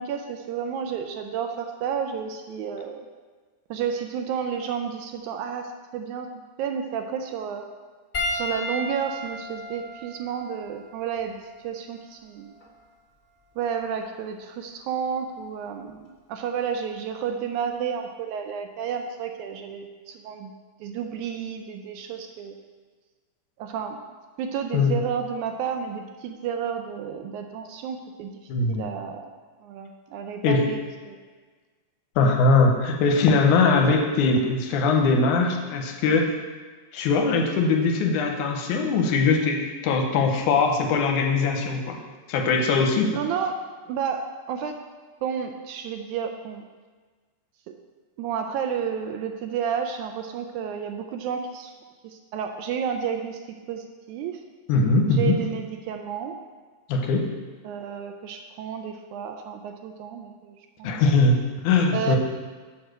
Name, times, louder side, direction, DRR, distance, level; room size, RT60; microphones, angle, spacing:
voice 1, 0.0-3.1 3.7-6.3 6.6-7.7 8.3-12.5 13.6-20.5 20.8-22.6 23.6-24.0 24.4-28.4 28.7-29.3 29.6-31.2 43.0-43.6 43.9-44.8 45.2-46.6 47.7-47.8 48.2-51.7 52.0-53.4 53.7-54.4 55.1-56.4 57.6-60.9 61.9-62.2, right 7 dB, 80° right, 5 dB, 1.9 m, -31 dB
Piano, 8.1-12.8 13.7-13.9 15.9-16.0, left 1 dB, 35° left, 1.1 m, -35 dB
voice 2, 28.5-28.9 30.4-30.7 32.2-36.4 36.9-42.0 42.3-43.1 54.7-55.4 56.9-57.3 60.8-62.2, left 3 dB, 75° left, 3 dB, 2.2 m, -21 dB
7.2 x 4.8 x 6.3 m, 1.4 s
omnidirectional pair, 3.7 m